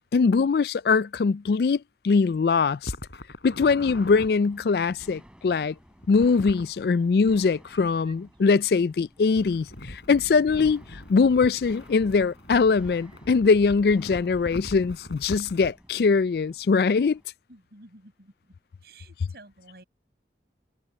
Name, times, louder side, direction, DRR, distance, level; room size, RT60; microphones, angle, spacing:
voice 1, 0.1-2.9 3.4-5.7 6.1-17.2, left 4 dB, 60° left, 0.3 m, -22 dB
sound 1, 2.8-4.3 6.0-6.7 9.3-15.7, left 1 dB, 85° left, 3.7 m, -41 dB
sound 2, 3.8-17.3, equal, 5° right, 6.2 m, -53 dB
sound 3, 7.5-8.9 9.3-9.5 11.1-11.9 12.5-12.6 12.9-13.8, right 4 dB, 30° right, 4.7 m, -62 dB
voice 2, 17.5-18.6 18.8-19.8, right 2 dB, 60° right, 7.1 m, -51 dB
head